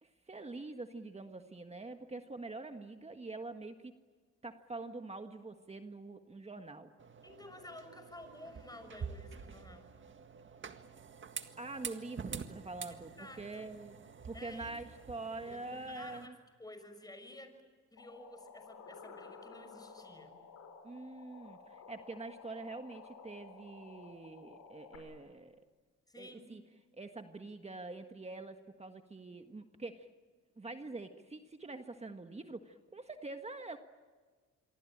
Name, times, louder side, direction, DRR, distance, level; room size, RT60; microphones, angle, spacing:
voice 1, 0.0-3.9 4.4-6.9 11.6-13.9 14.2-16.3 20.8-25.6 26.2-26.6 26.9-30.1 30.6-33.8, right 3 dB, 20° right, 6 dB, 1.6 m, -45 dB
sound 1, 7.0-16.3, right 6 dB, 40° right, 1.8 m, -47 dB
voice 2, 7.2-9.9 13.0-13.7 14.3-14.8 15.5-16.3 16.6-17.6 17.9-20.4 26.1-26.5, left 1 dB, 15° left, 8 dB, 6.2 m, -52 dB
sound 2, 18.0-25.0, left 5 dB, 75° left, 6.4 m, -54 dB
27.0 x 23.5 x 8.9 m, 1.4 s
cardioid pair, 90°, 30 cm